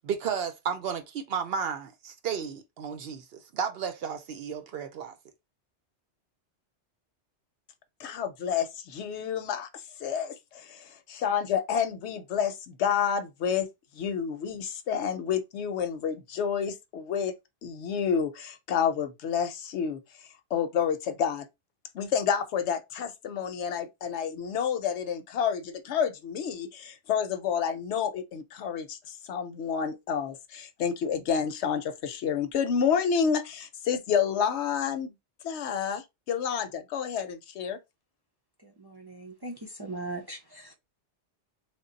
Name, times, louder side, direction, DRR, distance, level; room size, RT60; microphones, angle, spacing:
voice 1, 0.0-5.1, right 7 dB, 65° right, 0.8 m, -33 dB
voice 2, 8.0-13.7 13.9-17.3 17.6-21.5 21.9-35.1 35.4-37.8, left 7 dB, 75° left, 0.9 m, -29 dB
voice 3, 38.6-40.7, right 2 dB, 30° right, 0.5 m, -39 dB
3.3 x 2.2 x 3.8 m
omnidirectional pair, 1.2 m